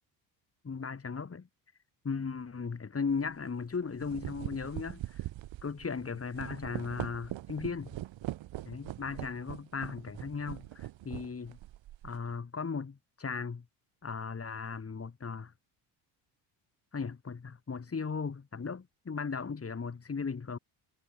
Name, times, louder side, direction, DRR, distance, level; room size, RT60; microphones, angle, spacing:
voice 1, 0.6-1.5 2.0-5.2 5.6-7.9 8.6-11.6 12.0-13.6 14.0-15.5 16.9-20.6, left 5 dB, 30° left, 4.7 m, -37 dB
sound 1, 3.1-3.3 3.8-12.3, right 14 dB, 65° right, 7.1 m, -42 dB
supercardioid pair, 75°, 48 cm